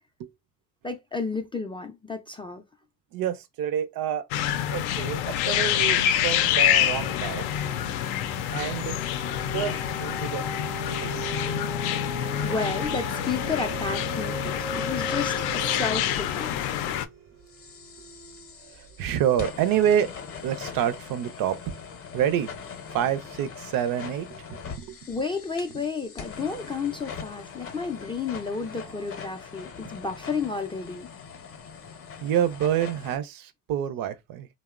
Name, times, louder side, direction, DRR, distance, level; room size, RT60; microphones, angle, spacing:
voice 1, 0.8-2.6 12.4-16.6 25.1-31.1, left 4 dB, 15° left, 0.3 m, -32 dB
voice 2, 3.1-4.3 4.7-7.8 8.5-9.0 9.5-10.5 11.0-11.3 16.8-17.0 18.8-20.1 20.4-21.8 22.1-22.5 22.9-25.0 32.2-34.5, right 10 dB, 60° right, 0.5 m, -28 dB
sound 1, 4.3-17.1, left 11 dB, 75° left, 0.5 m, -27 dB
sound 2, 5.9-6.1 6.5-19.0 19.5-19.6, right 3 dB, 85° right, 0.8 m, -39 dB
sound 3, 17.5-33.2, left 6 dB, 35° left, 0.7 m, -42 dB
2.8 x 2.0 x 2.4 m
supercardioid pair, 90°, 39 cm